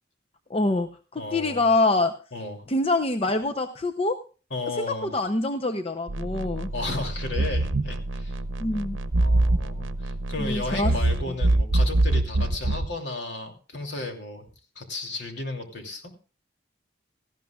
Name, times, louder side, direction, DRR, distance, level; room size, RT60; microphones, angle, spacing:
voice 1, 0.5-2.1 2.7-4.2 4.8-6.7 8.6-9.0 10.4-10.9, left 2 dB, 30° left, 7 dB, 0.7 m, -25 dB
voice 2, 1.2-1.7 2.3-2.6 4.5-5.1 6.7-8.4 9.1-14.4 14.7-16.1, left 2 dB, 65° left, 3 dB, 2.9 m, -34 dB
sound 1, 6.1-12.9, right 2 dB, 80° right, 0.7 m, -25 dB
18.0 x 14.5 x 2.4 m, 0.36 s
head